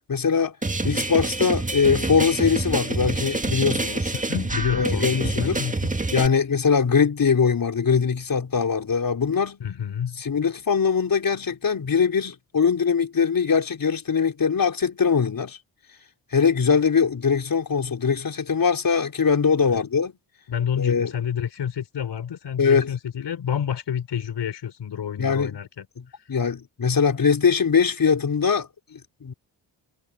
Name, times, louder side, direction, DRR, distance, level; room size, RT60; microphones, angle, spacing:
voice 1, 0.1-0.5 0.8-4.1 4.7-5.6 6.1-9.6 10.2-15.6 16.3-20.1 20.8-21.1 22.6-22.9 25.2-25.6 26.0-29.3, left 6 dB, 50° left, 4.1 m, -22 dB
sound 1, 0.6-6.3, right 2 dB, 15° right, 1.9 m, -27 dB
voice 2, 4.1-5.9 9.6-10.2 19.7-19.8 20.5-25.9, left 8 dB, 65° left, 6.1 m, -29 dB
supercardioid pair, 50°, 44 cm